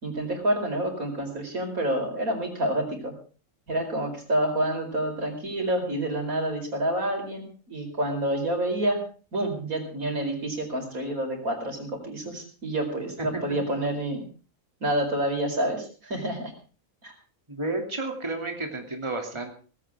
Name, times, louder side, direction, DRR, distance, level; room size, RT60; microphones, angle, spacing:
voice 1, 0.0-3.1 3.7-9.0 9.3-14.2 14.8-16.5 17.0-17.1, right 1 dB, 85° right, 3 dB, 5.1 m, -28 dB
voice 2, 13.2-13.6 17.5-19.5, right 2 dB, 20° right, 3 dB, 2.8 m, -32 dB
18.5 x 16.5 x 3.6 m, 0.40 s
omnidirectional pair, 1.4 m